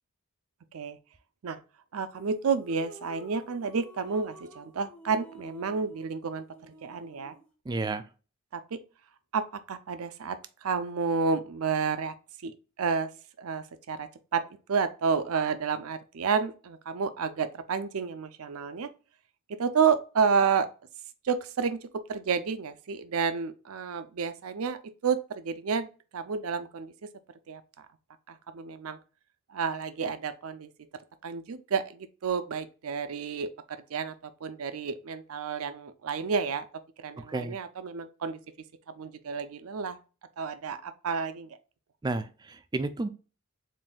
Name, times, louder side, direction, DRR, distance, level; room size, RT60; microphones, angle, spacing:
voice 1, 1.9-7.3 8.5-8.8 9.3-12.1 12.4-13.1 13.4-14.4 14.7-18.9 19.5-20.7 21.2-27.1 27.5-27.6 28.3-29.0 29.5-30.7 31.2-36.7 37.0-38.4 39.0-40.0 40.4-41.6, right 5 dB, 75° right, 0.5 m, -30 dB
sound 1, 2.1-7.5, equal, 5° left, 0.8 m, -51 dB
voice 2, 7.7-8.0 37.2-37.6 42.0-43.1, right 2 dB, 20° right, 0.4 m, -32 dB
7.4 x 2.6 x 2.3 m
head